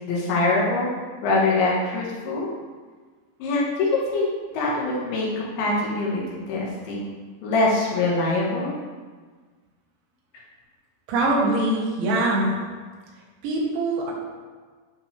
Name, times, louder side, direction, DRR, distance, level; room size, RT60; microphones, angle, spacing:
voice 1, 0.1-0.9 1.2-2.5 3.4-6.2 6.5-7.1 7.4-8.7, left 2 dB, 80° left, -4 dB, 3.8 m, -23 dB
voice 2, 11.1-12.6 13.4-14.1, right 2 dB, 90° right, -3 dB, 3.9 m, -23 dB
11.5 x 5.6 x 3.4 m, 1.5 s
omnidirectional pair, 5.2 m